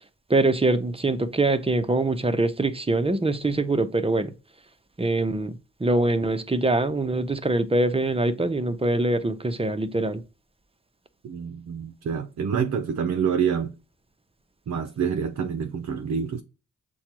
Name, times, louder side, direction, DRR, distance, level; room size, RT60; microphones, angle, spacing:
voice 1, 0.3-4.3 5.0-10.2, right 2 dB, 20° right, 0.7 m, -24 dB
voice 2, 11.2-13.7 14.7-16.4, right 7 dB, 60° right, 0.6 m, -27 dB
6.9 x 2.3 x 2.9 m
cardioid pair, 45°, 31 cm